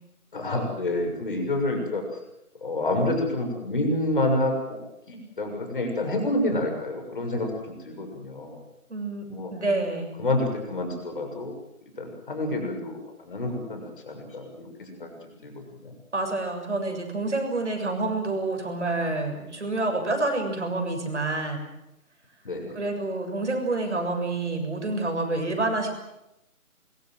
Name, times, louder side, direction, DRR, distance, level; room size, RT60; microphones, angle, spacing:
voice 1, 0.3-2.0 2.6-4.8 5.1-7.5 7.8-8.6 9.3-9.5 10.2-11.6 12.0-15.2 15.4-15.5 15.8-15.9 22.4-22.8, left 1 dB, 35° left, 4 dB, 6.6 m, -28 dB
voice 2, 8.9-10.2 16.1-21.7 22.7-25.9, right 2 dB, 50° right, 4 dB, 6.9 m, -28 dB
24.5 x 23.5 x 7.9 m, 0.90 s
figure-of-eight pair, 155°, 44 cm